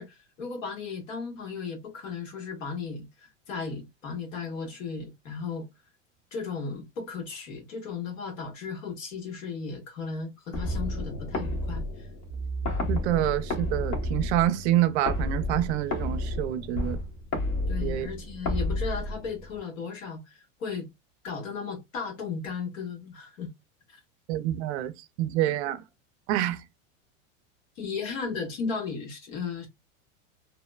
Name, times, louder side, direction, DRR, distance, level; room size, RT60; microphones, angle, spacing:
voice 1, 0.0-5.7 6.3-12.1 13.3-13.4 17.7-20.9 21.2-23.5 23.9-24.0 27.8-29.7, left 5 dB, 75° left, 1.4 m, -35 dB
sound 1, 10.5-19.6, left 1 dB, 45° left, 1.1 m, -31 dB
voice 2, 12.9-17.0 17.8-18.1 24.3-24.9 25.2-25.8 26.3-26.6, right 13 dB, 60° right, 0.5 m, -27 dB
2.8 x 2.1 x 2.2 m
supercardioid pair, 120°, 39 cm